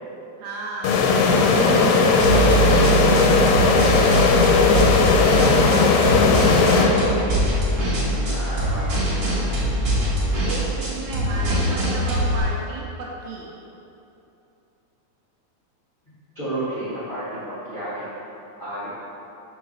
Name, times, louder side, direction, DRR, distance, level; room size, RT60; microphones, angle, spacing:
voice 1, 0.4-1.1 1.5-2.1 10.4-13.5, right 3 dB, 80° right, -3 dB, 1.7 m, -33 dB
sound 1, 0.8-7.5, left 4 dB, 80° left, 1.8 m, -17 dB
sound 2, 2.2-12.4, right 2 dB, 55° right, 1.3 m, -23 dB
voice 2, 4.6-9.1 16.3-18.1 18.6-18.9, right 1 dB, 60° left, -12 dB, 0.5 m, -32 dB
4.6 x 3.9 x 5.4 m, 2.8 s
omnidirectional pair, 3.5 m